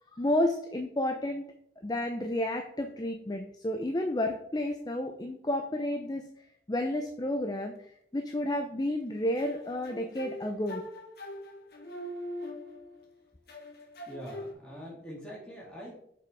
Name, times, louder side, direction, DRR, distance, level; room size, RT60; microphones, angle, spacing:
voice 1, 0.1-1.4 1.8-6.2 6.7-7.7 8.1-10.8, left 1 dB, 20° left, 5 dB, 0.5 m, -31 dB
sound 1, 9.4-13.1 13.5-14.5, left 1 dB, 60° left, 1.4 m, -42 dB
voice 2, 14.1-16.0, equal, 5° left, -6 dB, 2.9 m, -43 dB
6.5 x 5.6 x 4.6 m, 0.70 s
head